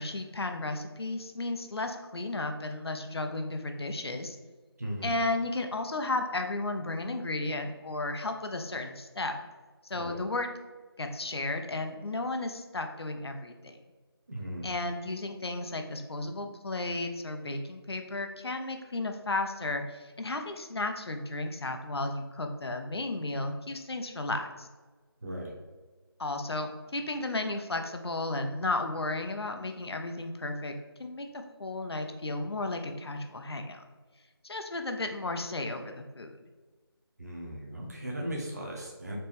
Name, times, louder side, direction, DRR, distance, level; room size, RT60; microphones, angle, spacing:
voice 1, 0.0-4.4 5.0-9.3 9.8-10.5 11.0-13.8 14.6-24.7 26.2-30.7 31.0-33.8 34.4-36.3, left 2 dB, 75° left, 5 dB, 0.6 m, -34 dB
voice 2, 4.8-5.1 9.9-10.2 14.3-14.7 25.2-25.6 37.2-39.2, equal, 40° right, -1 dB, 0.9 m, -37 dB
4.3 x 3.1 x 3.5 m, 1.3 s
figure-of-eight pair, 175°, 13 cm